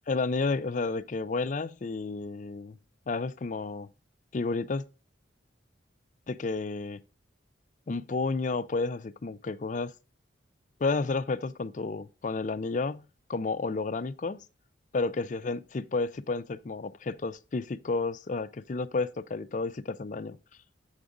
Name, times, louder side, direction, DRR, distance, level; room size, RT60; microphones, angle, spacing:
voice 1, 0.1-2.8 3.1-3.9 4.3-4.8 6.3-7.0 7.9-9.9 10.8-13.0 13.3-14.4 14.9-20.4, left 3 dB, 40° left, 0.4 m, -31 dB
7.9 x 4.8 x 3.8 m
head